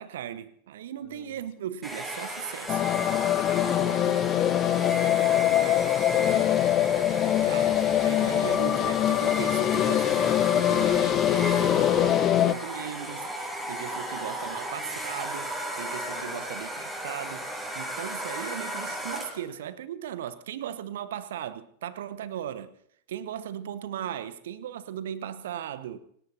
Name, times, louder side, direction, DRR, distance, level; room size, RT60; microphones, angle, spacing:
voice 1, 0.0-2.8 7.4-22.7 23.1-26.0, right 10 dB, 60° right, 1.1 m, -38 dB
voice 2, 1.0-1.4 3.6-6.5 16.1-16.4, left 7 dB, 55° left, 2.4 m, -41 dB
Domestic sounds home sounds, 1.8-19.5, right 1 dB, 10° right, 7.7 m, -35 dB
sound 1, 2.7-12.5, left 11 dB, 30° left, 0.8 m, -23 dB
28.0 x 17.5 x 2.8 m
figure-of-eight pair, 90°, 0 cm